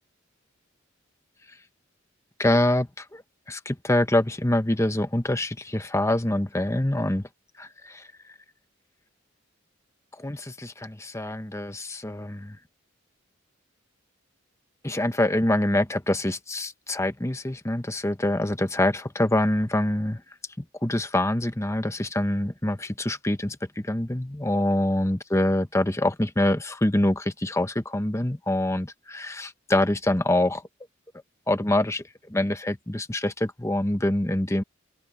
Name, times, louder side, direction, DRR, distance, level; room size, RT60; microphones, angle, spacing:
voice 1, 2.4-3.2 3.5-7.2 7.6-8.0 10.2-12.6 14.8-20.2 20.8-30.6 31.5-34.6, left 1 dB, 15° left, 1.1 m, -25 dB
open air
head